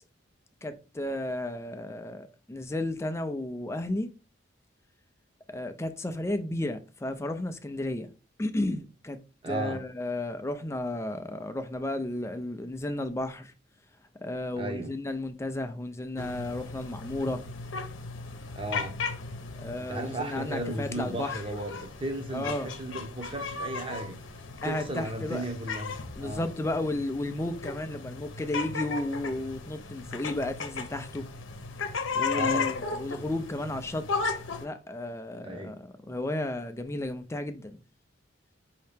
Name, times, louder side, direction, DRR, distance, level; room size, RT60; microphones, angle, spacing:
voice 1, 0.6-4.1 5.5-8.1 8.4-9.2 9.5-13.5 14.2-17.4 19.6-21.3 22.3-22.7 24.6-25.4 26.2-31.3 32.1-34.3 34.6-37.8, left 1 dB, 15° left, 0.4 m, -33 dB
voice 2, 9.4-9.8 14.6-14.9 18.5-19.0 19.8-24.2 24.6-26.5 32.3-32.7 35.4-35.8, right 1 dB, 25° right, 0.9 m, -35 dB
sound 1, 16.2-34.7, left 4 dB, 80° left, 0.8 m, -36 dB
5.4 x 2.8 x 3.4 m
head